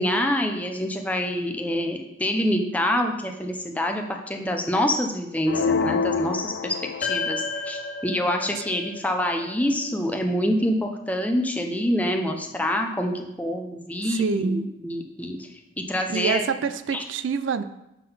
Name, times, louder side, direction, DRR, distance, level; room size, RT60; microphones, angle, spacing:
voice 1, 0.0-15.5 15.8-16.4 16.9-17.0, left 1 dB, 10° left, 3 dB, 0.5 m, -26 dB
sound 1, 5.5-7.5, left 6 dB, 70° left, 0.3 m, -27 dB
sound 2, 7.0-11.5, left 4 dB, 45° left, 1.5 m, -34 dB
voice 2, 14.1-14.7 16.1-17.6, right 5 dB, 75° right, 12 dB, 0.4 m, -26 dB
7.3 x 3.8 x 5.5 m, 0.89 s
head